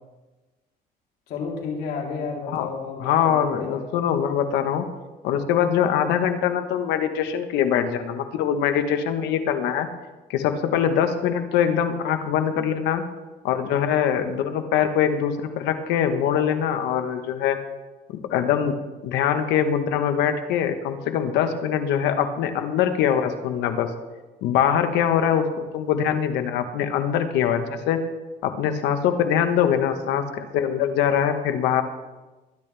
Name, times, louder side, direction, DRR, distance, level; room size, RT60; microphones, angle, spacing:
voice 1, 1.3-3.8, left 5 dB, 75° left, -2 dB, 3.5 m, -32 dB
voice 2, 3.0-4.8 5.2-9.9 10.3-13.0 13.4-17.6 18.3-18.7 19.0-23.9 24.4-25.5 25.7-28.0 28.4-31.8, left 8 dB, 90° left, 7 dB, 1.3 m, -23 dB
21.5 x 10.5 x 3.4 m, 1.2 s
cardioid pair, 110°, 17 cm